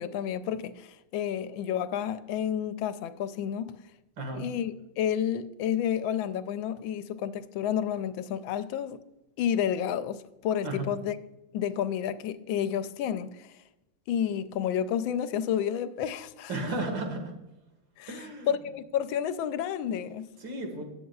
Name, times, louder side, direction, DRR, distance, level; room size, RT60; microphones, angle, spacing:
voice 1, 0.0-3.8 4.4-9.0 9.4-11.2 11.5-13.5 14.1-16.5 18.0-20.3, left 9 dB, 85° left, 1.4 m, -30 dB
voice 2, 16.5-17.2 18.1-18.5 20.4-20.8, right 2 dB, 75° right, 2.6 m, -33 dB
18.0 x 7.7 x 2.3 m
omnidirectional pair, 2.1 m